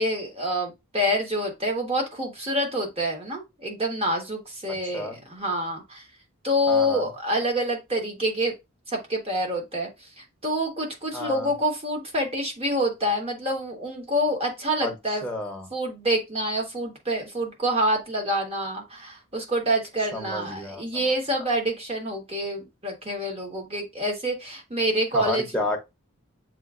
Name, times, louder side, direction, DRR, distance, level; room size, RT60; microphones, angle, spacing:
voice 1, 0.0-6.1 6.4-8.5 8.9-15.2 15.7-25.6, equal, 25° right, 1.2 m, -27 dB
voice 2, 4.7-5.2 6.7-7.1 11.1-11.5 14.8-14.9 15.2-15.7 20.1-21.1 25.1-25.8, left 2 dB, 5° left, 0.8 m, -31 dB
7.3 x 2.5 x 2.4 m
head